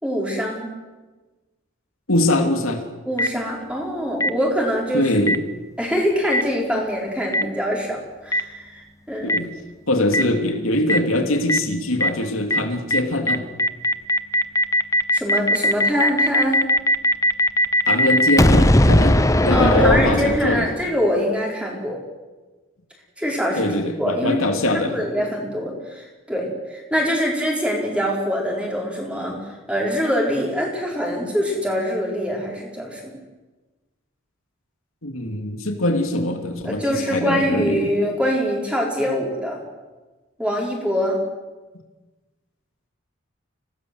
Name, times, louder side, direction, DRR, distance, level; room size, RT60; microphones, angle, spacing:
voice 1, 0.0-0.7 3.1-5.1 5.8-9.4 15.1-16.7 19.5-22.0 23.2-23.7 24.0-24.4 24.7-33.0 36.6-39.6 40.4-41.2, equal, 5° right, -2 dB, 5.2 m, -24 dB
voice 2, 2.1-2.8 4.9-5.4 9.2-9.5 9.9-13.4 17.9-20.7 23.6-24.9 35.0-37.9, left 1 dB, 90° left, 4 dB, 2.9 m, -22 dB
Boom, 3.2-3.3 4.2-4.3 5.3-5.4 6.3-6.4 7.3-7.4 8.3-8.4 9.3-9.4 10.1-10.2 10.9-11.0 11.5-11.6 12.0-12.1 12.5-12.6 12.9-13.0 13.3-20.8, left 1 dB, 15° left, 0.7 m, -18 dB
26.5 x 18.5 x 8.1 m, 1.2 s
head